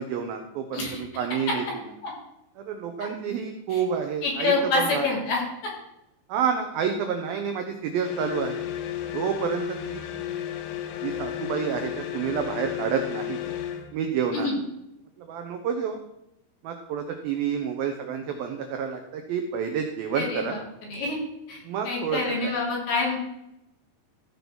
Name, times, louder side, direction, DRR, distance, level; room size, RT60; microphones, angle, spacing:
voice 1, 0.0-1.6 2.6-5.1 6.3-8.6 9.1-10.1 11.0-13.4 13.9-14.5 15.2-16.0 16.6-20.6 21.6-22.5, right 7 dB, 80° right, 5 dB, 2.1 m, -29 dB
voice 2, 4.2-5.4 14.3-14.5 20.1-20.6 20.9-21.2 21.5-21.6 21.8-23.2, left 3 dB, 55° left, -4 dB, 5.2 m, -26 dB
sound 1, 8.0-13.9, left 11 dB, 90° left, 3.6 m, -33 dB
15.0 x 5.4 x 6.1 m, 0.85 s
omnidirectional pair, 5.4 m